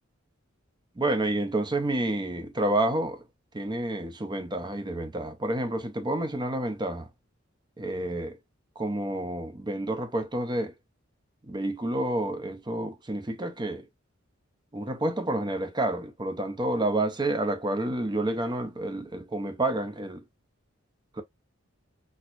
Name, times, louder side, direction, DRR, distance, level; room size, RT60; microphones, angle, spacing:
voice 1, 1.0-3.2 3.5-7.1 7.8-8.4 8.8-10.7 11.5-13.9 14.7-20.2, right 1 dB, 20° right, 0.6 m, -29 dB
4.3 x 2.3 x 2.4 m
head